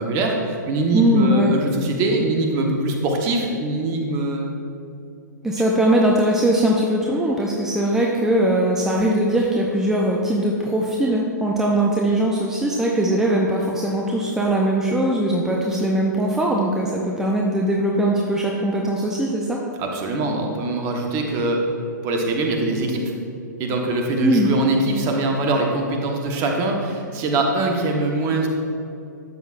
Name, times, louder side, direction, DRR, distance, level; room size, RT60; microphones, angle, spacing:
voice 1, 0.0-4.5 19.8-21.6 22.0-23.1 23.6-28.5, right 2 dB, 30° right, 2 dB, 1.2 m, -23 dB
voice 2, 0.9-1.5 5.4-19.6 24.2-24.5, right 1 dB, 5° right, -2 dB, 0.6 m, -20 dB
12.0 x 8.1 x 2.5 m, 2.6 s
figure-of-eight pair, 115°, 10 cm